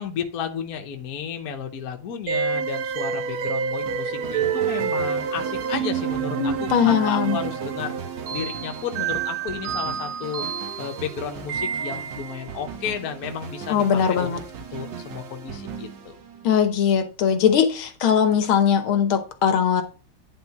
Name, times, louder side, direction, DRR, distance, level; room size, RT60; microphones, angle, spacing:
voice 1, 0.0-7.9 8.3-10.4 10.8-14.3 14.7-16.1, left 7 dB, 55° left, 1.3 m, -33 dB
sound 1, 2.3-12.4, right 7 dB, 75° right, 1.7 m, -28 dB
sound 2, 3.9-16.8, right 6 dB, 60° right, 1.7 m, -38 dB
voice 2, 6.4-7.4 13.7-14.4 16.4-19.8, left 8 dB, 75° left, 1.8 m, -20 dB
10.0 x 3.8 x 5.8 m
omnidirectional pair, 2.3 m